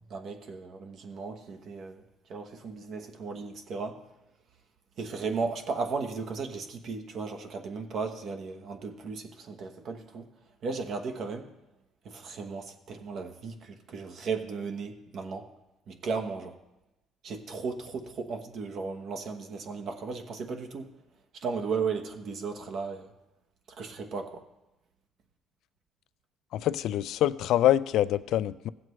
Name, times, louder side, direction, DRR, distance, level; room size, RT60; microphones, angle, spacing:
voice 1, 0.1-2.0 2.3-4.0 5.0-10.3 10.6-11.5 12.0-15.5 15.9-16.6 17.2-20.9 21.3-23.1 23.8-24.4, right 4 dB, 50° right, 5 dB, 1.1 m, -35 dB
voice 2, 26.5-28.7, left 12 dB, 65° left, 16 dB, 0.4 m, -25 dB
17.0 x 7.5 x 3.2 m, 0.98 s
cardioid pair, 140°, 0 cm